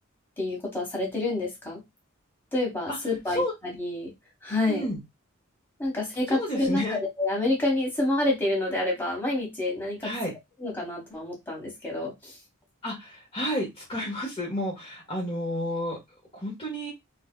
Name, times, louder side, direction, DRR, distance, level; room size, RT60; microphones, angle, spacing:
voice 1, 0.4-1.8 2.5-4.1 4.4-4.9 5.8-10.1 10.6-12.3, left 2 dB, 10° left, -2 dB, 1.6 m, -28 dB
voice 2, 4.7-5.0 6.3-7.0 10.0-10.3 12.8-16.0 16.3-16.9, equal, 25° left, -4 dB, 1.4 m, -31 dB
3.4 x 3.2 x 2.3 m, 0.20 s
head